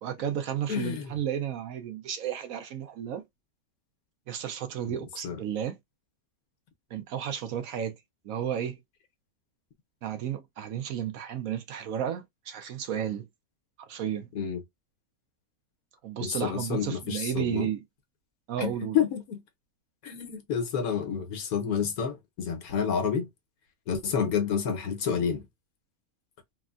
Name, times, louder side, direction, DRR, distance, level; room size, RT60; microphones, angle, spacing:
voice 1, 0.0-3.2 4.3-5.8 6.9-8.0 8.2-8.8 10.0-13.2 13.9-14.3 16.0-17.8 18.5-19.0, right 9 dB, 70° right, 1.1 m, -33 dB
voice 2, 0.7-1.1 4.9-5.0 5.2-5.4 14.3-14.6 16.2-17.7 18.6-19.4 20.0-23.3 23.9-25.4, left 7 dB, 90° left, 1.3 m, -29 dB
3.4 x 2.1 x 2.4 m
omnidirectional pair, 1.5 m